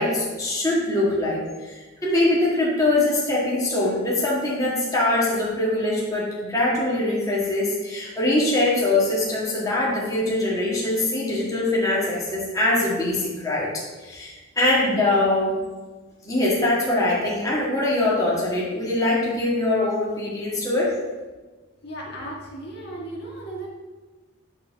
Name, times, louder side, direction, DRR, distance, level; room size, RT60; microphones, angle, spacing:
voice 1, 0.0-13.7 14.0-15.6 16.2-20.9, left 2 dB, 15° left, -6 dB, 1.9 m, -23 dB
voice 2, 21.8-23.7, right 1 dB, 50° left, -4 dB, 2.0 m, -35 dB
10.0 x 4.3 x 6.0 m, 1.3 s
head